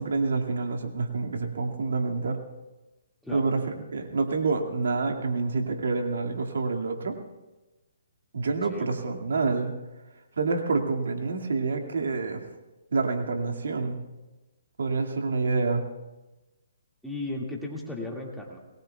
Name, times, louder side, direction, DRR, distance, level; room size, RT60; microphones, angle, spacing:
voice 1, 0.0-2.4 3.3-7.2 8.3-9.7 10.4-12.4 12.9-14.0 14.8-15.8, right 4 dB, 80° right, 3 dB, 2.2 m, -27 dB
voice 2, 17.0-18.6, left 2 dB, ahead, -3 dB, 2.1 m, -35 dB
27.5 x 20.0 x 2.4 m, 1.1 s
hypercardioid pair, 155°, 0 cm